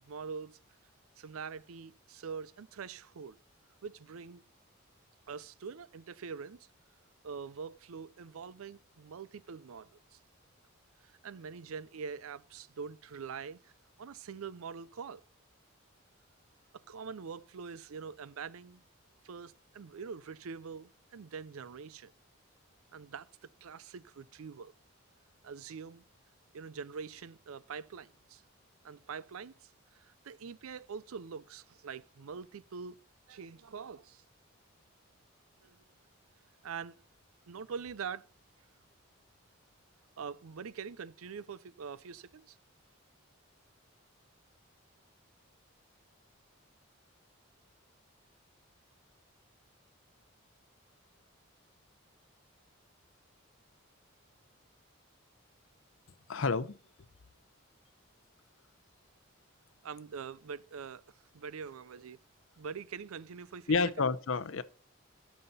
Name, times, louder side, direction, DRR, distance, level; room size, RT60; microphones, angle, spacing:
voice 1, 0.1-0.6 1.2-3.4 3.8-4.4 5.3-6.7 7.2-10.2 11.0-13.7 14.0-15.2 16.7-18.8 19.2-22.1 22.9-24.7 25.4-26.0 26.5-28.4 28.8-33.0 33.3-34.2 35.6-35.8 36.6-37.0 37.5-38.3 40.2-42.6 59.8-62.2 62.6-64.0, right 6 dB, 85° right, 0.5 m, -44 dB
voice 2, 56.3-56.8 63.7-64.6, left 4 dB, 70° left, 0.6 m, -29 dB
13.5 x 5.7 x 4.1 m
head